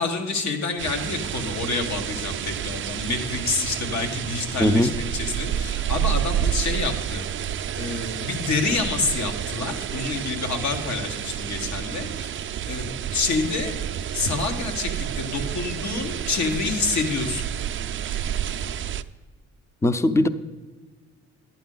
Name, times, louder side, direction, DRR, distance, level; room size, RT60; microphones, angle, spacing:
voice 1, 0.0-13.7 14.1-17.5, left 3 dB, 65° left, 4 dB, 1.6 m, -28 dB
sound 1, 0.8-19.0, right 9 dB, 40° right, 0.4 m, -29 dB
voice 2, 4.6-4.9 19.8-20.3, left 1 dB, 10° left, 12 dB, 0.5 m, -19 dB
12.0 x 9.2 x 3.9 m, 1.4 s
cardioid pair, 90°, 30 cm